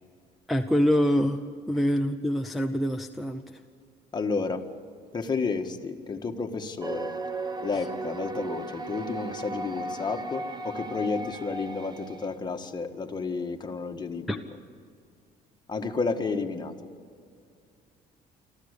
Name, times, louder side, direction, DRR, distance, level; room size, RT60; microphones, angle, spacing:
voice 1, 0.5-1.4 1.7-3.6 14.3-14.4, equal, ahead, 3 dB, 0.8 m, -25 dB
voice 2, 4.1-4.6 5.1-7.1 7.6-14.4 15.7-16.7, left 4 dB, 25° left, 4 dB, 1.6 m, -31 dB
sound 1, 6.8-12.3, right 2 dB, 25° right, 1.1 m, -36 dB
24.5 x 14.5 x 8.3 m, 2.3 s
cardioid pair, 110°, 17 cm